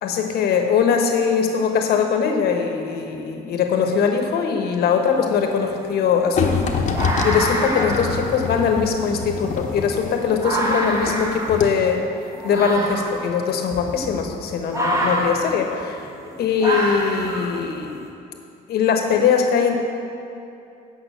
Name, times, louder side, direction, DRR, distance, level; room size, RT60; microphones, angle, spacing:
voice 1, 0.0-12.0 12.4-16.1 16.4-18.0 18.7-19.8, left 6 dB, 70° left, 3 dB, 1.2 m, -21 dB
sound 1, 4.9-5.0 5.4-18.0, right 1 dB, 20° right, 1.5 m, -27 dB
sound 2, 6.4-11.2 11.5-11.6, left 5 dB, 45° left, 1.0 m, -25 dB
8.5 x 5.7 x 7.8 m, 2.6 s
cardioid pair, 110°, 17 cm